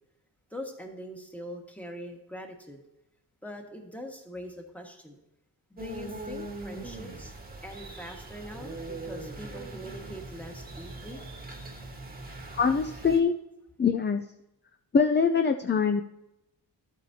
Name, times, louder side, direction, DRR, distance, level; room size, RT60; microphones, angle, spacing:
voice 1, 0.5-2.8 3.4-5.2 5.7-7.3 7.6-11.2, equal, 5° left, 2 dB, 1.6 m, -42 dB
sound 1, 5.8-13.2, right 2 dB, 25° right, 1.4 m, -41 dB
voice 2, 12.6-13.3 13.8-14.2 14.9-16.0, left 5 dB, 25° left, 7 dB, 0.5 m, -23 dB
13.0 x 8.3 x 2.8 m, 0.89 s
wide cardioid pair, 100°, 39 cm